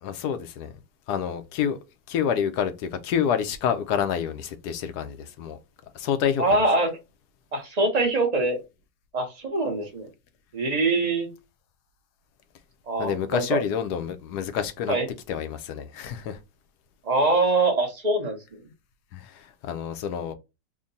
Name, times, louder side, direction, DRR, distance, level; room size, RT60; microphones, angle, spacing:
voice 1, 0.0-0.7 1.1-1.8 2.1-5.6 5.9-6.4 13.0-15.0 15.3-16.4 19.1-20.3, left 8 dB, 75° left, 1.1 m, -28 dB
voice 2, 6.4-6.9 7.5-8.6 9.1-10.1 10.5-11.3 12.9-13.6 14.9-15.1 17.0-18.4, right 2 dB, 35° right, 0.6 m, -23 dB
3.6 x 2.2 x 3.9 m
omnidirectional pair, 1.8 m